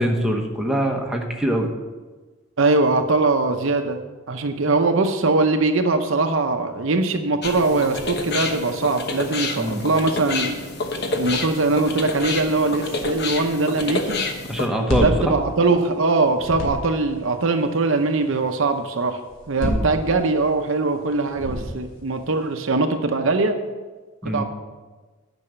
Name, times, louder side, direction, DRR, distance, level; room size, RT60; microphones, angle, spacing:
voice 1, 0.0-1.7 9.6-9.8 14.5-15.3 19.6-19.8 24.2-24.4, equal, 5° right, 1 dB, 1.0 m, -23 dB
voice 2, 2.6-4.0 4.3-10.6 11.2-14.2 15.0-19.2 19.5-23.6 24.2-24.4, right 3 dB, 65° right, 6 dB, 0.7 m, -21 dB
sound 1, 7.4-14.7, left 3 dB, 50° left, 1.0 m, -28 dB
sound 2, 14.8-16.1 16.4-17.1 19.3-20.5 21.3-22.1, equal, 90° left, 2.2 m, -28 dB
9.9 x 6.2 x 6.9 m, 1.3 s
head